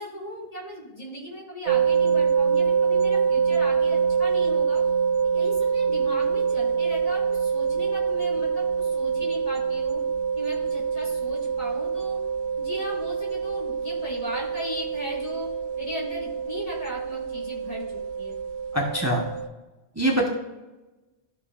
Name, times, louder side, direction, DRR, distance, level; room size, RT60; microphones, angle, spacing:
voice 1, 0.0-4.8 5.3-10.0 10.4-12.2 12.6-15.5 15.8-18.4, left 1 dB, 30° left, -6 dB, 2.7 m, -37 dB
sound 1, 1.7-19.5, right 6 dB, 75° right, 0.8 m, -25 dB
voice 2, 18.7-19.2 20.0-20.3, right 1 dB, 15° right, -1 dB, 1.1 m, -23 dB
14.5 x 5.3 x 2.5 m, 1.1 s
omnidirectional pair, 1.1 m